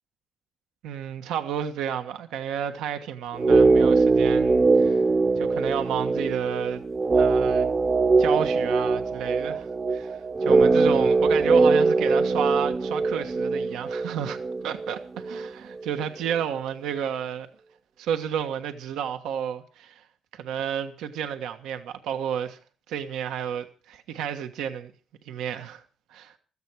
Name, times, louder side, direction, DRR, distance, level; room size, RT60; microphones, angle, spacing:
voice 1, 0.8-5.0 5.3-6.8 7.1-7.7 8.2-15.0 15.3-17.5 18.0-20.0 20.3-22.6 22.9-24.9 25.2-25.8 26.1-26.4, right 8 dB, 90° right, 1.3 m, -31 dB
sound 1, 3.4-15.5 15.7-15.8, right 3 dB, 30° right, 0.8 m, -22 dB
15.5 x 14.0 x 4.6 m
cardioid pair, 90°, 0 cm